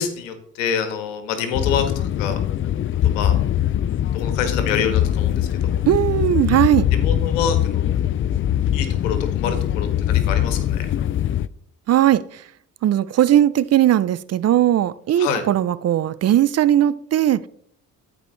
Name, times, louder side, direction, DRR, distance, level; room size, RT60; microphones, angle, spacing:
voice 1, 0.0-2.4 2.9-3.4 4.1-5.8 6.9-7.9 8.7-10.9 15.2-15.4, left 7 dB, 90° left, 8 dB, 1.5 m, -26 dB
sound 1, 1.5-11.5, left 11 dB, 35° left, 0.4 m, -22 dB
voice 2, 5.9-6.9 11.9-12.2 12.8-17.4, right 12 dB, 45° right, 18 dB, 0.5 m, -18 dB
13.5 x 5.0 x 3.2 m, 0.65 s
hypercardioid pair, 60°, 37 cm